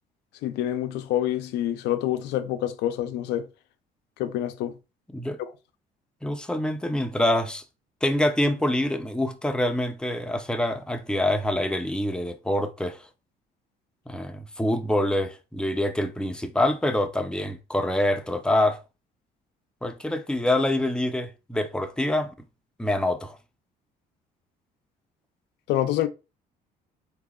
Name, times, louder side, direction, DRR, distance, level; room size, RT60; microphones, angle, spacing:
voice 1, 0.4-3.5 4.2-4.8 25.7-26.1, left 12 dB, 85° left, 0.6 m, -27 dB
voice 2, 6.2-7.6 8.0-13.0 14.1-18.8 19.8-22.3 22.8-23.3, left 1 dB, 5° left, 0.6 m, -25 dB
4.0 x 3.0 x 3.7 m
cardioid pair, 110°, 17 cm